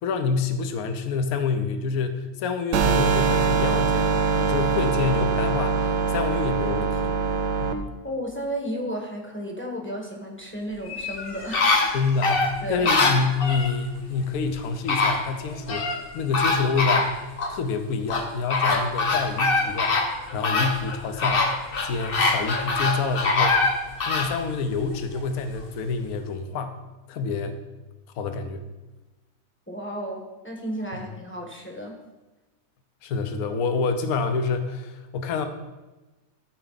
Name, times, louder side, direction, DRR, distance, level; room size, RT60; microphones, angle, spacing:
voice 1, 0.0-7.1 7.6-7.8 11.9-17.1 17.5-19.9 20.3-21.5 21.8-23.6 24.0-26.8 27.1-27.6 28.2-28.6 31.0-31.1 33.0-35.5, left 4 dB, 60° left, 7 dB, 1.1 m, -27 dB
sound 1, 2.7-7.7, right 5 dB, 85° right, 1.4 m, -23 dB
voice 2, 8.0-12.0 12.6-12.9 29.7-32.0, equal, 10° left, 0 dB, 0.9 m, -33 dB
sound 2, 10.9-13.7 14.5-14.6 14.9-16.0 16.3-17.5 18.1-24.3 24.8-24.9, left 3 dB, 45° left, 0.8 m, -23 dB
13.5 x 4.6 x 3.9 m, 1.1 s
omnidirectional pair, 1.9 m